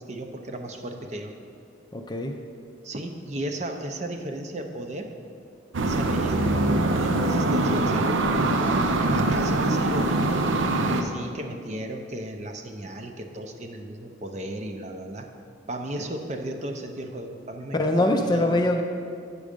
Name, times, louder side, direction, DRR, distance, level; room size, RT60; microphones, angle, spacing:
voice 1, 0.0-1.3 2.8-5.1 5.9-8.2 9.1-10.5 10.9-15.3 15.7-18.5, right 1 dB, 35° right, 4 dB, 0.5 m, -35 dB
voice 2, 1.9-2.4 17.7-18.8, left 1 dB, 20° left, 4 dB, 0.4 m, -23 dB
sound 1, 5.7-11.0, right 2 dB, 85° right, 0.6 m, -23 dB
8.4 x 6.2 x 5.1 m, 2.4 s
head